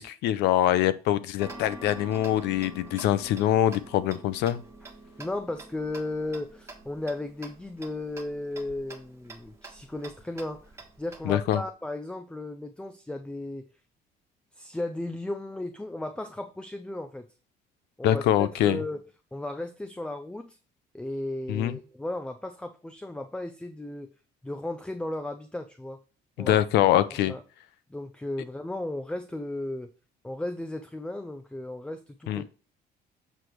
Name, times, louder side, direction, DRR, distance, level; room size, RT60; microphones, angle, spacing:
voice 1, 0.0-4.6 11.3-11.6 18.0-18.8 21.5-21.8 26.4-27.3 32.3-32.4, left 12 dB, 85° left, 0.6 m, -24 dB
Tick-tock, 1.4-11.6, right 2 dB, 15° right, 1.4 m, -46 dB
voice 2, 5.2-10.7 11.0-13.7 14.5-17.3 18.0-19.0 19.3-20.6 20.9-24.1 24.4-26.0 26.4-26.6 27.0-27.4 27.9-29.9 30.2-32.5, left 2 dB, 5° left, 0.4 m, -35 dB
8.0 x 3.3 x 4.5 m
cardioid pair, 110°, 17 cm